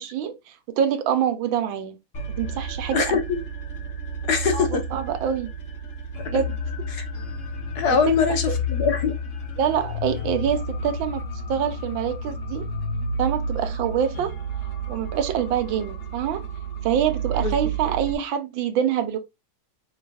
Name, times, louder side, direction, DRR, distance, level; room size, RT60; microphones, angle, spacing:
voice 1, 0.0-2.0 2.4-3.2 4.5-5.5 6.3-6.6 7.9-8.0 8.5-8.6 9.6-11.2 11.5-12.7 13.2-14.3 14.9-16.4 16.8-19.2, right 9 dB, 80° right, 1.5 m, -25 dB
sound 1, 2.1-18.1, right 1 dB, 45° left, 0.8 m, -31 dB
voice 2, 2.9-3.4 4.3-4.8 6.3-6.4 6.9-7.1 7.7-9.2 17.4-17.5, left 6 dB, 65° left, 1.2 m, -22 dB
5.3 x 4.2 x 2.3 m
omnidirectional pair, 2.1 m